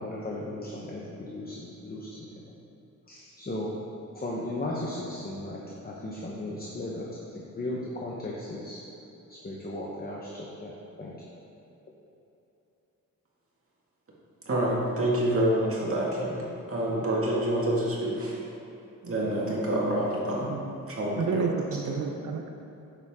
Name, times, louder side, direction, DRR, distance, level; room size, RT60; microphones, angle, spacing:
voice 1, 0.0-2.5 3.1-3.7 4.1-8.8 9.3-11.2, left 1 dB, 30° left, -3 dB, 0.9 m, -36 dB
voice 2, 14.5-18.4 19.0-20.5 20.9-21.5 21.8-22.0, right 1 dB, 45° right, -5 dB, 2.0 m, -27 dB
voice 3, 20.4-20.7 21.2-22.5, right 6 dB, 70° right, 4 dB, 0.7 m, -30 dB
9.9 x 6.9 x 3.6 m, 3.0 s
wide cardioid pair, 135°, 32 cm